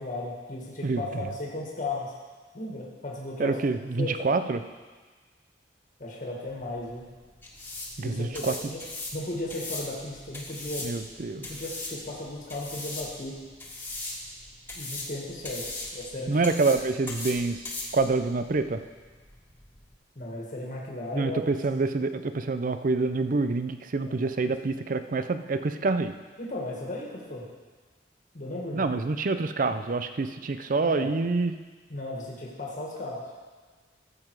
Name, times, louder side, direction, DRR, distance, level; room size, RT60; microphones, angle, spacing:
voice 1, 0.0-2.1 2.5-3.6 4.0-4.2 6.0-7.1 8.0-8.8 9.1-11.0 11.4-13.4 14.7-15.6 15.9-16.5 20.2-21.4 24.0-24.1 26.4-27.4 28.3-28.9 30.8-31.1 31.9-33.2, left 2 dB, 45° left, -3 dB, 1.8 m, -35 dB
voice 2, 3.4-4.6 8.0-8.5 10.8-11.5 16.3-17.6 17.9-18.8 21.1-26.2 28.7-31.5, right 3 dB, 50° right, 10 dB, 0.5 m, -27 dB
sound 1, 6.5-19.9, left 2 dB, 10° left, 1.8 m, -40 dB
13.5 x 7.6 x 4.7 m, 1.4 s
head